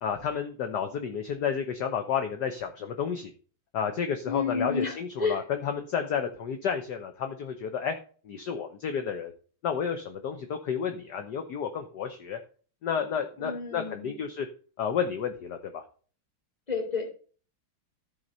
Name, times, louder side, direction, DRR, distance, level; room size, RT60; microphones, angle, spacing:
voice 1, 0.0-3.3 3.7-7.9 8.2-9.3 9.6-12.4 12.8-14.5 14.8-15.8, left 7 dB, 60° left, 6 dB, 1.4 m, -31 dB
voice 2, 4.2-5.4 13.4-14.2 16.7-17.1, left 5 dB, 20° left, 3 dB, 2.7 m, -31 dB
14.0 x 4.8 x 5.4 m, 0.40 s
omnidirectional pair, 2.3 m